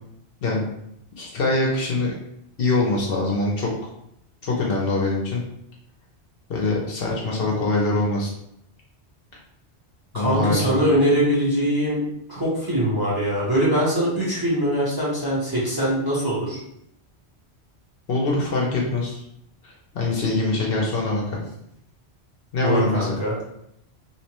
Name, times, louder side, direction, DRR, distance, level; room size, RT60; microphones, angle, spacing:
voice 1, 1.2-2.1 2.6-3.7 4.4-5.4 6.5-8.3 10.1-10.8 18.1-19.2 19.6-21.2 22.5-23.1, left 2 dB, 60° left, -2 dB, 0.8 m, -23 dB
voice 2, 10.1-16.6 22.6-23.3, equal, 25° right, -8 dB, 0.7 m, -22 dB
2.8 x 2.1 x 2.9 m, 0.77 s
omnidirectional pair, 1.1 m